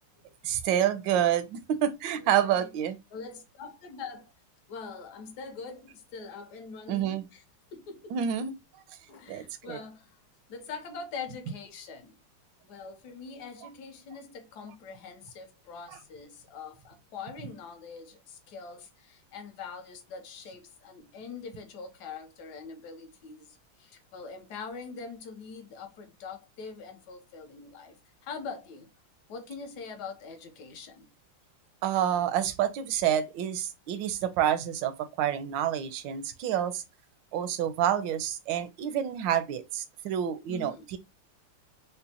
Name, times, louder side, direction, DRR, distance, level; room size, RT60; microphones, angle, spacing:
voice 1, 0.4-3.0 6.9-7.2 8.1-8.5 9.3-9.8 31.8-36.8 37.3-41.0, right 10 dB, 75° right, 1.2 m, -28 dB
voice 2, 2.1-2.7 3.1-4.3 4.7-7.4 7.7-8.2 9.1-10.1 10.5-12.2 12.6-28.0 28.2-28.9 29.3-31.1 40.5-40.8, left 5 dB, 65° left, 1.1 m, -43 dB
5.1 x 2.1 x 2.7 m
omnidirectional pair, 2.3 m